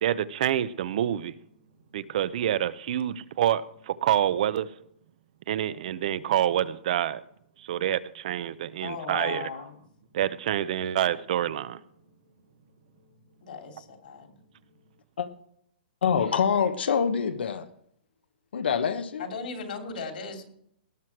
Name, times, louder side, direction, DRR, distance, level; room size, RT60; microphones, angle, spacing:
voice 1, 0.0-1.3 1.9-4.7 5.5-7.2 7.6-9.5 10.1-11.8, right 11 dB, 45° right, 0.5 m, -27 dB
voice 2, 8.8-9.8 13.4-14.4 19.2-20.5, left 5 dB, 65° left, 2.7 m, -37 dB
voice 3, 16.0-17.7 18.5-19.3, left 7 dB, 85° left, 1.1 m, -25 dB
18.5 x 6.3 x 4.6 m
hypercardioid pair, 165°, 6 cm